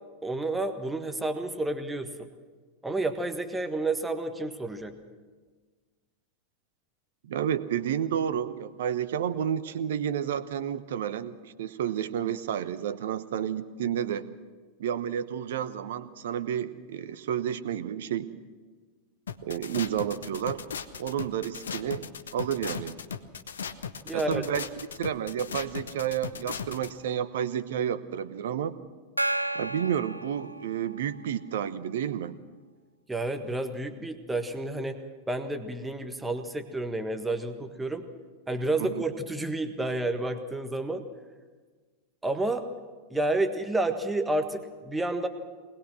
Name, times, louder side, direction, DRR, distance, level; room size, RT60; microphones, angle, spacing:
voice 1, 0.2-2.3 2.8-4.9 24.0-24.4 33.1-35.0 35.3-38.0 38.5-41.0 42.2-42.7 43.1-45.3, right 2 dB, 10° right, 7 dB, 1.5 m, -30 dB
voice 2, 7.2-14.2 14.8-18.3 19.4-20.6 20.9-22.1 22.3-22.9 24.1-28.7 29.5-32.3 38.8-39.0, right 9 dB, 60° right, 14 dB, 1.0 m, -31 dB
sound 1, 19.3-26.9, left 7 dB, 65° left, 1.0 m, -37 dB
Gong, 29.2-31.2, right 1 dB, 85° right, 0.6 m, -32 dB
21.0 x 20.5 x 6.2 m, 1.4 s
figure-of-eight pair, 90°, 0 cm